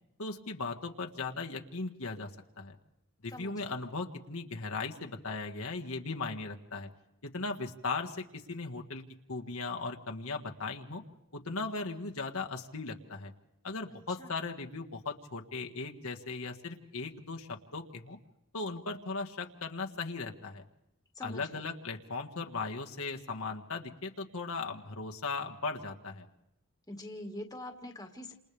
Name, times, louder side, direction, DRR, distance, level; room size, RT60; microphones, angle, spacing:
voice 1, 0.2-2.3 2.6-2.8 3.2-6.9 7.2-9.0 9.3-11.0 11.3-13.3 13.6-18.2 18.5-20.6 21.2-26.3, left 3 dB, 75° left, 2 dB, 1.7 m, -38 dB
voice 2, 3.3-3.8 14.2-14.3 21.2-21.7 26.9-28.3, left 1 dB, 15° left, 4 dB, 1.8 m, -44 dB
29.0 x 28.0 x 3.5 m, 0.86 s
head